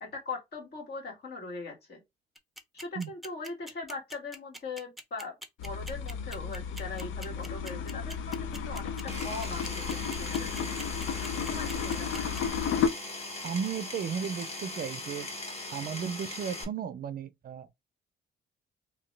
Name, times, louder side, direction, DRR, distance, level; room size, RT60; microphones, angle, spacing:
voice 1, 0.0-2.0 2.8-5.3 5.6-10.7 11.5-12.3, left 3 dB, 55° left, 1.8 m, -40 dB
sound 1, 2.4-12.4, right 1 dB, ahead, 0.6 m, -43 dB
sound 2, 5.6-12.9, left 7 dB, 85° left, 0.5 m, -33 dB
Power tool, 9.1-16.6, left 2 dB, 30° left, 1.3 m, -39 dB
voice 2, 13.4-15.3 15.7-17.7, right 7 dB, 45° right, 0.4 m, -35 dB
2.9 x 2.9 x 3.2 m
cardioid pair, 90°, 20 cm